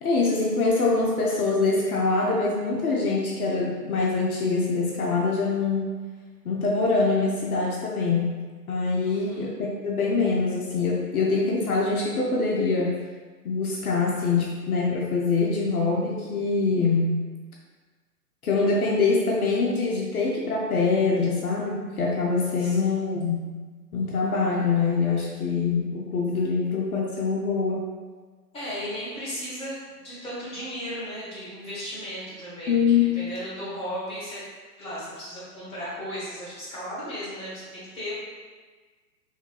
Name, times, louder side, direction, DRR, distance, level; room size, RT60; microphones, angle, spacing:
voice 1, 0.0-5.9 6.4-8.3 8.7-12.9 13.4-17.2 18.4-23.5 23.9-27.9 32.7-33.1, left 4 dB, 60° left, -2 dB, 0.7 m, -24 dB
voice 2, 9.1-9.5 22.6-23.0 28.5-34.4 34.8-38.1, equal, 10° left, -10 dB, 1.2 m, -36 dB
4.6 x 3.1 x 2.2 m, 1.4 s
figure-of-eight pair, 120°, 49 cm